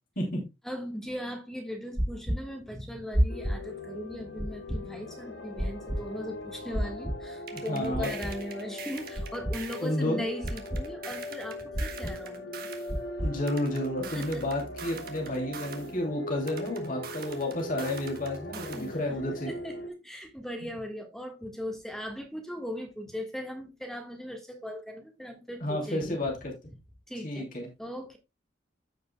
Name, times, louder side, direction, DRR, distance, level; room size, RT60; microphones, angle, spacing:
voice 1, 0.6-12.7 14.1-14.5 18.7-26.2 27.1-27.4 27.8-28.2, equal, 5° left, 1.5 m, -39 dB
sound 1, 2.0-2.4 3.1-3.6 4.4-4.8 5.6-6.0 6.7-7.2 7.9-8.3 9.2-9.6 10.4-10.8 11.7-12.1 12.9-13.3, equal, 20° right, 1.1 m, -28 dB
sound 2, 3.3-19.9, left 1 dB, 70° left, 1.3 m, -40 dB
sound 3, 7.5-9.9 10.5-12.9 13.5-15.9 16.5-18.9, right 6 dB, 55° right, 1.6 m, -44 dB
voice 2, 7.7-8.1 9.8-10.2 13.2-19.5 25.6-26.5 27.2-27.7, left 1 dB, 50° left, 2.7 m, -31 dB
14.5 x 5.2 x 2.2 m
head